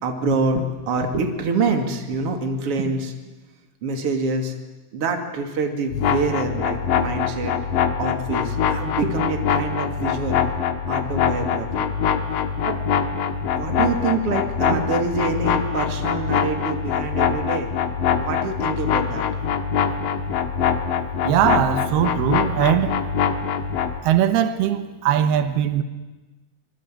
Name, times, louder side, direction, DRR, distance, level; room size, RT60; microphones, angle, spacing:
voice 1, 0.0-3.1 3.8-4.6 4.9-7.5 8.0-10.4 10.9-11.9 12.6-12.8 13.5-17.7 18.2-19.3, right 3 dB, 40° right, 3.0 m, -26 dB
sound 1, 5.9-24.0, left 7 dB, 65° left, 3.0 m, -23 dB
voice 2, 21.2-23.0 24.0-25.8, right 10 dB, 90° right, 3.2 m, -20 dB
25.0 x 22.5 x 9.1 m
omnidirectional pair, 4.4 m